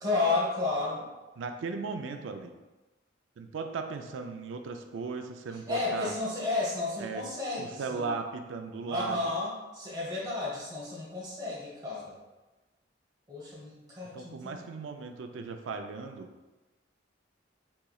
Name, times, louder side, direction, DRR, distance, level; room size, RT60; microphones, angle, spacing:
voice 1, 0.0-1.1 5.7-8.1 8.9-12.2 13.3-14.6, left 3 dB, 20° right, -6 dB, 1.0 m, -32 dB
voice 2, 1.4-2.5 3.4-6.1 7.0-7.2 7.6-9.3 14.1-16.3, right 4 dB, 80° right, 6 dB, 0.4 m, -37 dB
3.8 x 3.0 x 2.3 m, 1.1 s
head